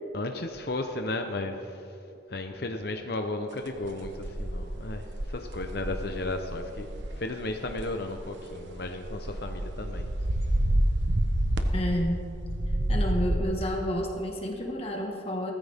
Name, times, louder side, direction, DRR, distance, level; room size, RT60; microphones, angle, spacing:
voice 1, 0.1-1.8 2.3-6.9 7.2-10.1, left 2 dB, 55° left, 5 dB, 0.9 m, -34 dB
sound 1, 3.8-7.1 7.6-7.8 8.1-12.1 12.4-13.4, right 1 dB, 85° right, 1.1 m, -28 dB
voice 2, 11.7-12.3 12.9-15.5, equal, 35° left, 0 dB, 1.6 m, -30 dB
19.5 x 14.0 x 3.6 m, 2.6 s
head